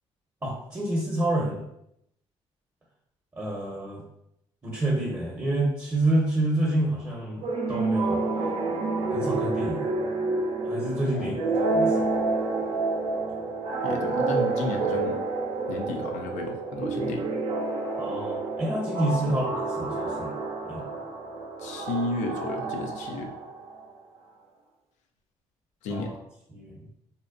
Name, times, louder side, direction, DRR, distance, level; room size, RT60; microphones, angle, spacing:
voice 1, 0.4-1.6 3.4-4.0 4.6-8.2 9.1-9.9 10.6-12.1 18.0-19.5 19.8-20.3 20.7-20.8 25.9-26.2 26.5-26.8, right 1 dB, 20° right, -3 dB, 0.7 m, -28 dB
sound 1, 7.4-23.8, right 3 dB, 55° right, 0.5 m, -29 dB
voice 2, 11.1-11.5 13.8-15.2 15.7-17.3 19.2-19.4 21.6-23.3 25.8-26.2, left 2 dB, 75° left, 4 dB, 0.4 m, -33 dB
2.7 x 2.0 x 2.4 m, 0.79 s
supercardioid pair, 65°, 12 cm